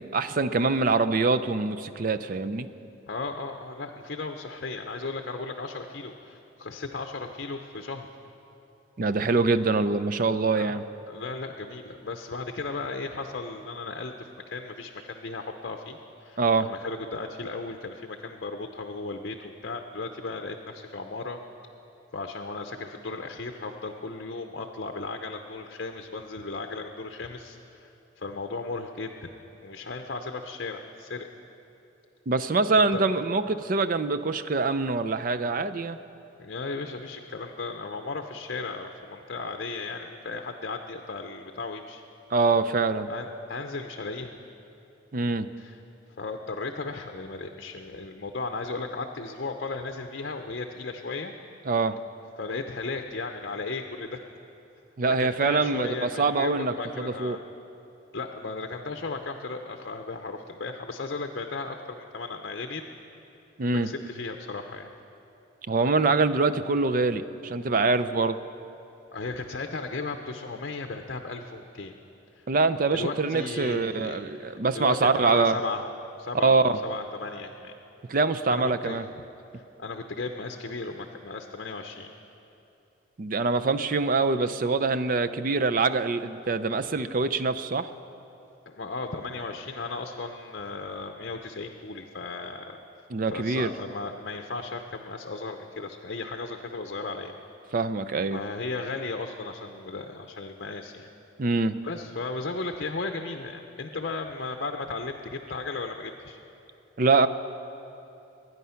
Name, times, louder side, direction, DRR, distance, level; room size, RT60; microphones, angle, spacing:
voice 1, 0.0-2.7 9.0-10.8 16.4-16.7 32.3-36.0 42.3-43.1 45.1-45.5 51.7-52.0 55.0-57.4 63.6-63.9 65.7-68.4 72.5-75.6 76.4-76.7 78.1-79.0 83.2-87.9 93.1-93.7 97.7-98.4 101.4-101.8 107.0-107.3, right 3 dB, 45° right, 12 dB, 0.5 m, -24 dB
voice 2, 3.1-8.1 10.6-10.8 11.1-21.4 22.1-27.9 28.2-29.3 29.6-31.3 32.9-33.0 36.4-42.0 43.1-44.4 45.6-45.8 46.2-51.3 52.4-54.2 55.0-57.4 58.1-62.8 63.8-64.9 69.1-71.9 72.3-72.4 72.9-74.4 74.7-75.8 76.2-77.7 78.5-79.0 79.5-82.1 88.7-92.8 93.3-97.3 98.3-101.1 101.8-106.4, left 3 dB, 55° left, 5 dB, 0.7 m, -35 dB
22.0 x 9.7 x 5.7 m, 2.9 s
head